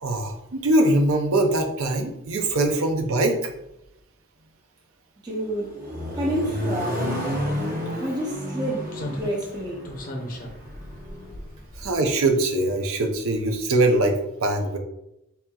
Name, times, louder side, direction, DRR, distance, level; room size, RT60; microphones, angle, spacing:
voice 1, 0.0-3.5 11.8-14.8, right 2 dB, 75° right, 0.6 m, -22 dB
voice 2, 5.2-5.8 6.1-7.2 8.0-9.9, equal, 20° right, 0.5 m, -29 dB
Accelerating revving vroom, 5.3-11.3, equal, 40° right, 0.9 m, -31 dB
Slam, 7.5-7.6 8.9-12.4 12.7-12.9, equal, 40° left, 0.6 m, -37 dB
4.2 x 3.5 x 2.3 m
head